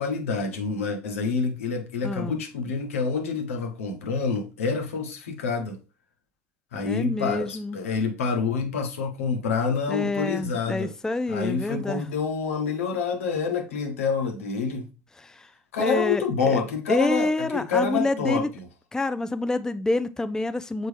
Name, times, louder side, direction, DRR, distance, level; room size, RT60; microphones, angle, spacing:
voice 1, 0.0-5.8 6.7-10.9 11.3-14.9 15.7-18.4, left 5 dB, 80° left, 1.1 m, -27 dB
voice 2, 2.0-2.4 6.9-7.8 9.9-12.1 15.2-15.5 15.8-16.6 16.9-18.5 18.9-20.9, left 2 dB, 10° left, 0.4 m, -27 dB
6.6 x 4.4 x 3.4 m
hypercardioid pair, 70°, 7 cm